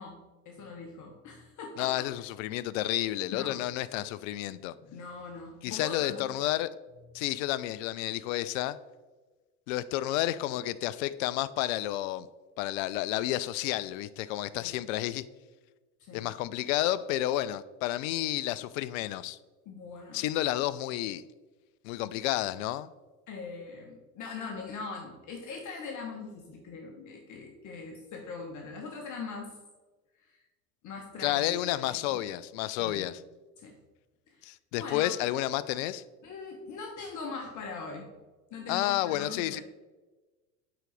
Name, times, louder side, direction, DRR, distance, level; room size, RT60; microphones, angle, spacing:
voice 1, 0.0-1.9 3.3-3.6 4.8-6.3 14.6-14.8 16.0-16.3 19.6-20.2 23.3-29.6 30.2-30.4 30.8-32.4 32.8-33.1 33.6-33.8 34.3-34.4 34.7-35.1 36.2-38.1 38.5-39.6, left 4 dB, 40° left, 1 dB, 1.0 m, -41 dB
voice 2, 1.8-4.7 5.6-6.7 7.1-8.8 9.7-12.3 12.6-15.2 16.1-19.4 20.1-21.2 21.8-22.9 31.2-33.1 34.4-36.0 38.7-39.6, left 14 dB, 60° left, 16 dB, 0.5 m, -31 dB
8.9 x 3.9 x 3.3 m, 1.2 s
hypercardioid pair, 75°, 45 cm